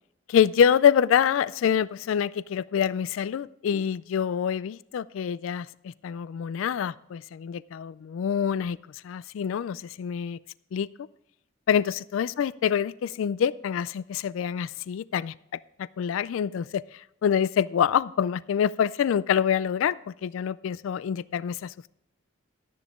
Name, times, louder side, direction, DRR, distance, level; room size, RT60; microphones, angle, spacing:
voice 1, 0.3-10.4 10.7-10.9 11.7-15.3 15.8-21.7, left 8 dB, 80° left, 19 dB, 0.3 m, -26 dB
12.0 x 10.5 x 3.6 m, 0.79 s
head